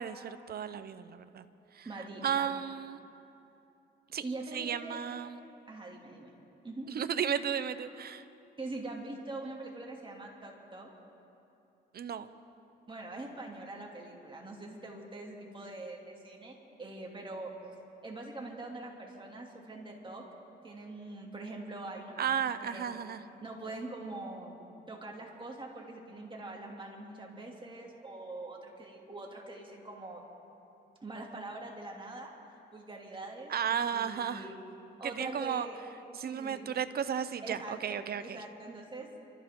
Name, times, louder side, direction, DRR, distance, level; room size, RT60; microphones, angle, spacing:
voice 1, 0.0-1.4 1.7-3.0 4.1-4.2 4.5-5.4 6.9-8.2 11.9-12.3 22.2-23.2 33.5-34.5 35.0-35.7 36.1-38.4, right 8 dB, 50° right, 12 dB, 0.8 m, -34 dB
voice 2, 1.8-2.5 4.2-5.0 5.7-6.3 6.6-6.9 7.4-7.5 8.6-10.9 12.9-17.5 18.0-20.2 20.6-22.9 23.4-30.2 31.0-32.3 32.7-33.5 33.9-34.5 35.0-35.8 36.2-36.7 37.4-39.1, right 2 dB, 25° right, -1 dB, 2.8 m, -43 dB
27.0 x 14.0 x 3.8 m, 2.8 s
cardioid pair, 90°, 20 cm